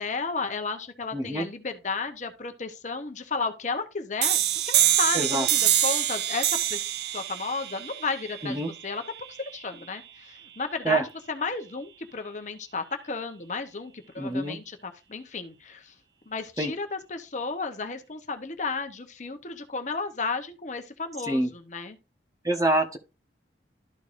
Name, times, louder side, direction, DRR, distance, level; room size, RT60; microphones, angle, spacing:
voice 1, 0.0-6.8 7.1-9.0 9.3-15.9 16.3-22.0, left 4 dB, 40° left, 0.9 m, -33 dB
voice 2, 1.1-1.5 5.1-5.5 8.4-8.7 10.8-11.0 14.2-14.6 16.6-16.7 21.3-21.5 22.4-23.0, right 2 dB, 20° right, 1.1 m, -26 dB
sound 1, 4.2-9.6, right 11 dB, 70° right, 0.5 m, -26 dB
13.0 x 4.6 x 2.5 m
head